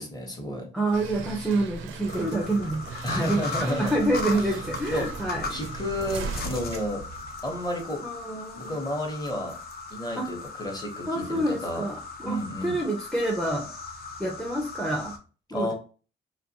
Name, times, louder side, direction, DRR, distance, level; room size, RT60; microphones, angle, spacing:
voice 1, 0.0-0.7 3.0-4.0 4.4-4.6 4.9-5.1 5.5-7.0 7.4-8.0 8.5-9.6 9.9-11.9 12.2-12.8 15.5-15.7, equal, 20° left, 2 dB, 1.0 m, -31 dB
voice 2, 0.7-5.6 8.0-8.8 10.2-10.3 11.1-13.7 14.2-15.2 15.5-15.7, right 1 dB, ahead, 0 dB, 0.5 m, -28 dB
sound 1, 0.9-7.9, right 5 dB, 85° right, 0.4 m, -38 dB
sound 2, 2.1-15.2, left 4 dB, 50° left, 0.6 m, -38 dB
2.4 x 2.2 x 2.8 m, 0.37 s
cardioid pair, 90°, 20 cm